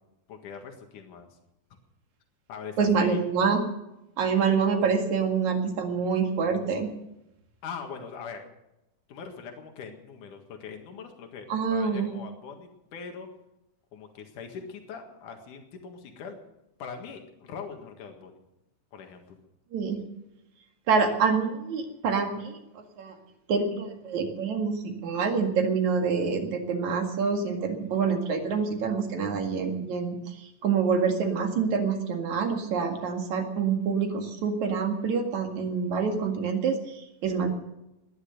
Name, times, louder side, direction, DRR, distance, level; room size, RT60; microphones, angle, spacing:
voice 1, 0.3-1.3 2.5-3.2 7.6-8.4 9.1-13.3 13.9-16.4 16.8-18.4 18.9-19.4, left 6 dB, 80° left, 4 dB, 3.3 m, -41 dB
voice 2, 2.8-3.6 4.2-6.9 11.5-12.1 19.7-20.0 20.9-23.1 23.5-37.5, right 5 dB, 70° right, 4 dB, 3.3 m, -26 dB
19.5 x 11.0 x 6.6 m, 0.90 s
omnidirectional pair, 3.5 m